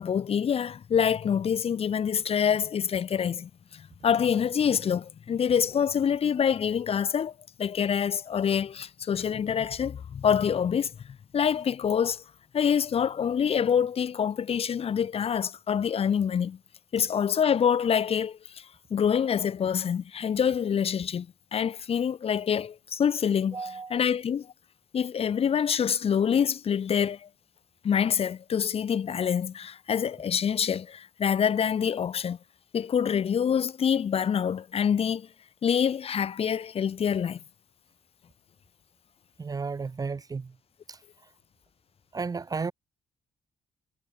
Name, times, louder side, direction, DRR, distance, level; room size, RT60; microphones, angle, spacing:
voice 1, 0.0-7.3 7.6-10.9 11.3-12.2 12.5-16.6 16.9-18.6 18.9-24.5 24.9-27.3 27.8-32.4 32.7-35.3 35.6-37.4, left 8 dB, 45° left, 1.5 m, -26 dB
voice 2, 23.5-23.9 39.4-40.5 40.9-41.0 42.1-42.7, right 4 dB, 25° right, 1.2 m, -33 dB
cardioid pair, 120°, 14 cm